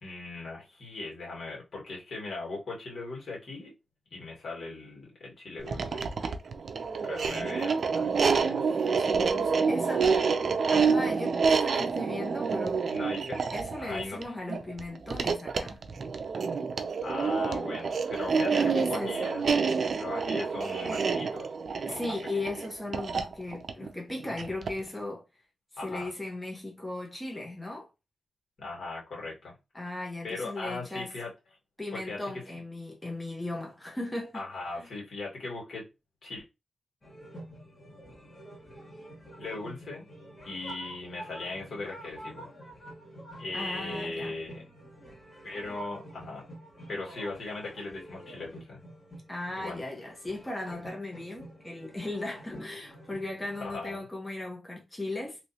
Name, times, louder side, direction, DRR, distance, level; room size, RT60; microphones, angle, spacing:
voice 1, 0.0-3.7 4.1-6.0 7.0-8.9 12.9-13.4 13.8-14.3 17.0-19.4 20.0-21.5 21.9-22.4 25.8-26.1 28.6-29.5 30.2-31.3 31.9-32.2 34.3-35.9 36.2-36.4 39.4-40.0 40.4-42.5 43.4-44.6 45.4-46.5 46.9-48.8 49.6-49.8 53.6-54.0, left 3 dB, 70° left, 1.8 m, -38 dB
sound 1, 5.6-24.9, right 5 dB, 70° right, 0.4 m, -28 dB
voice 2, 9.0-10.2 10.7-12.8 13.5-15.8 18.5-19.3 21.8-25.2 25.7-27.9 29.7-31.1 31.8-34.4 34.8-34.9 43.5-44.3 49.3-55.4, left 2 dB, 20° left, 1.1 m, -37 dB
sound 2, 37.0-53.8, right 1 dB, 35° left, 2.1 m, -48 dB
3.0 x 2.9 x 2.8 m
cardioid pair, 65°, 0 cm